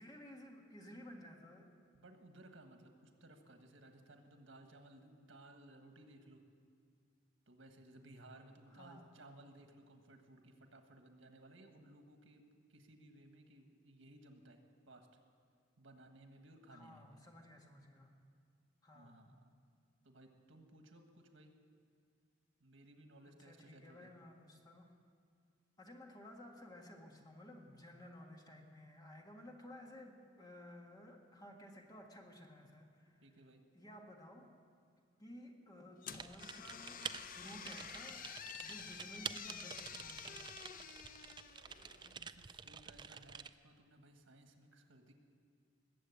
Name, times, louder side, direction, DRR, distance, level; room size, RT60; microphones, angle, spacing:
voice 1, 0.0-1.7 8.7-9.1 16.7-18.1 18.8-19.2 23.4-24.9 25.8-33.2 33.7-34.6 35.2-38.3 38.6-40.4, left 1 dB, 20° left, 1 dB, 1.6 m, -55 dB
voice 2, 1.9-6.4 7.5-12.4 12.7-15.1 15.8-17.2 18.9-19.4 20.0-21.5 22.6-24.1 33.2-33.6 41.9-45.1, right 1 dB, 85° right, 5 dB, 1.5 m, -60 dB
sound 1, 36.0-42.2, left 7 dB, 45° left, 0.6 m, -50 dB
Typing, 36.1-43.5, right 6 dB, 25° right, 0.4 m, -49 dB
20.5 x 7.9 x 8.2 m, 2.2 s
head